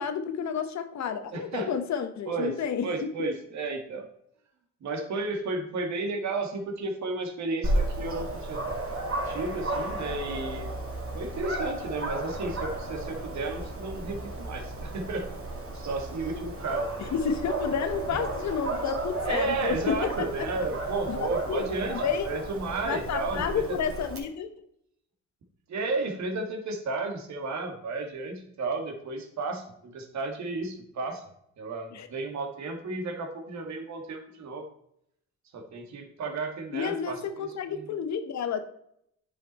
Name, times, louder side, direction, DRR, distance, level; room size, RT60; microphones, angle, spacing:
voice 1, 0.0-2.8 17.1-20.5 21.1-21.7 22.0-22.3 22.8-24.5 31.9-32.1 36.7-38.6, left 7 dB, 65° left, 9 dB, 1.1 m, -30 dB
voice 2, 1.3-1.7 2.3-4.1 4.8-8.6 9.2-10.7 11.1-15.3 15.7-17.1 18.1-18.2 19.3-23.6 25.7-31.2 31.6-34.7 35.5-37.9, right 3 dB, 65° right, 4 dB, 1.9 m, -33 dB
Dog, 7.6-24.2, right 2 dB, 45° right, 2.7 m, -33 dB
9.5 x 5.5 x 4.2 m, 0.72 s
cardioid pair, 90°, 30 cm